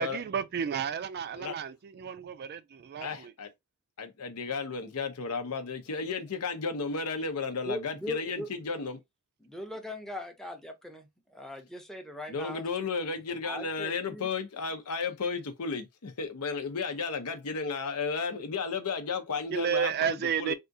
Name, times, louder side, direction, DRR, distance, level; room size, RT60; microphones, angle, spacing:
voice 1, 0.0-3.3 19.5-20.5, right 7 dB, 45° right, 0.3 m, -32 dB
voice 2, 3.0-3.5 4.0-9.0 12.3-20.5, left 4 dB, 85° left, 0.7 m, -33 dB
voice 3, 7.7-8.5 9.4-12.6 13.4-14.3, equal, ahead, 0.6 m, -40 dB
3.6 x 2.4 x 2.6 m
head